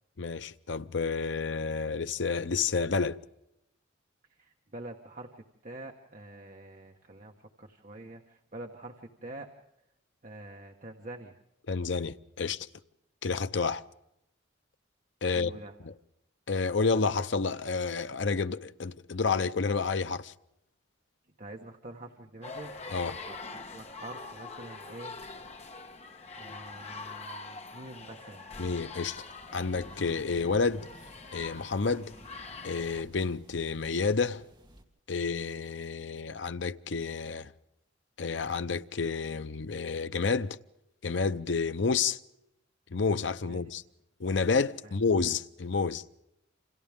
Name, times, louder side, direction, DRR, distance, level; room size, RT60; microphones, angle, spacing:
voice 1, 0.2-3.2 11.7-12.7 13.2-13.8 15.2-15.5 15.8-15.9 16.5-20.3 22.9-23.2 28.6-29.2 29.5-30.9 31.3-32.1 32.6-34.4 35.1-37.5 38.2-40.6 41.0-42.2 42.9-43.8 44.2-46.0, left 4 dB, 65° left, 0.7 m, -30 dB
voice 2, 4.3-9.5 10.2-11.4 15.3-15.7 21.4-22.7 23.3-25.2 26.3-28.4 43.5-43.7 44.8-45.0, right 2 dB, 40° right, 1.4 m, -46 dB
sound 1, 22.4-33.0, left 3 dB, 35° left, 1.3 m, -44 dB
sound 2, 29.1-34.8, equal, 25° right, 2.1 m, -54 dB
29.0 x 26.5 x 3.6 m
head